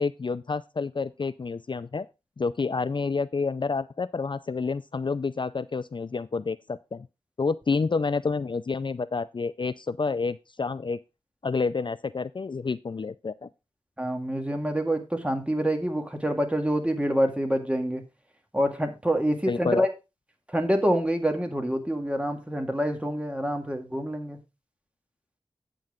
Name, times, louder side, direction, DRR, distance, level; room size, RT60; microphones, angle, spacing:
voice 1, 0.0-2.1 2.4-7.1 7.4-11.0 11.4-13.5 19.5-19.9, left 4 dB, 50° left, 15 dB, 0.4 m, -29 dB
voice 2, 14.0-18.0 18.5-19.9 20.5-24.4, equal, 10° right, 4 dB, 1.9 m, -26 dB
8.8 x 7.6 x 3.6 m, 0.26 s
wide cardioid pair, 60°, 10 cm